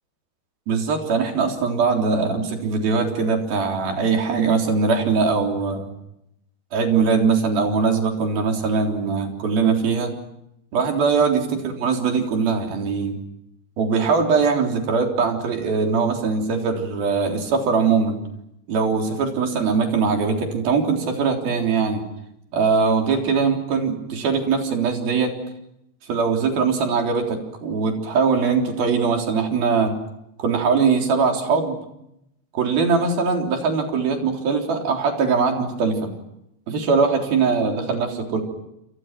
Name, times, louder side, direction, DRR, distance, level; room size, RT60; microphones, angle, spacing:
voice 1, 0.7-5.9 6.7-10.1 10.7-13.2 13.8-18.2 18.7-22.0 22.5-25.3 26.1-30.0 30.4-31.8 32.5-36.1 36.7-38.4, right 5 dB, 60° right, 3 dB, 5.4 m, -21 dB
29.0 x 27.5 x 6.0 m, 0.82 s
omnidirectional pair, 5.0 m